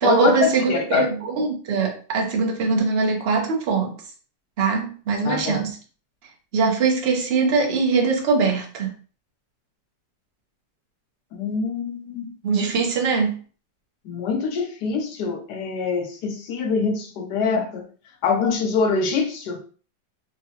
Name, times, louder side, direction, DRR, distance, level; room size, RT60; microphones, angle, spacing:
voice 1, 0.0-3.9 4.6-5.8 6.5-8.9 12.4-13.4, right 4 dB, 55° right, 0.7 m, -22 dB
voice 2, 0.7-1.0 5.2-5.6 11.3-12.4 14.1-17.8 18.2-19.6, left 5 dB, 70° left, 1.1 m, -24 dB
3.7 x 2.2 x 2.8 m
omnidirectional pair, 2.0 m